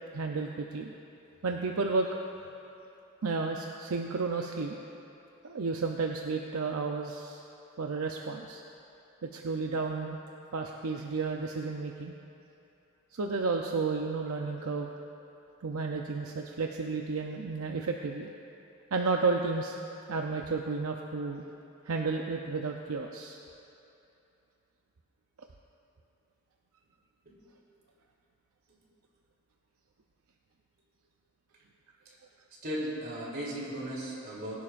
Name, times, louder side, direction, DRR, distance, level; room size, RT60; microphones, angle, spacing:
voice 1, 0.1-0.9 1.4-2.1 3.2-4.8 5.4-7.4 7.8-8.6 9.2-10.2 10.5-12.1 13.1-14.9 15.6-18.3 18.9-19.8 20.1-21.4 21.9-23.4, right 4 dB, 75° right, 2 dB, 0.6 m, -32 dB
voice 2, 32.6-34.6, right 1 dB, 45° right, -5 dB, 3.2 m, -36 dB
21.5 x 11.0 x 2.5 m, 2.9 s
head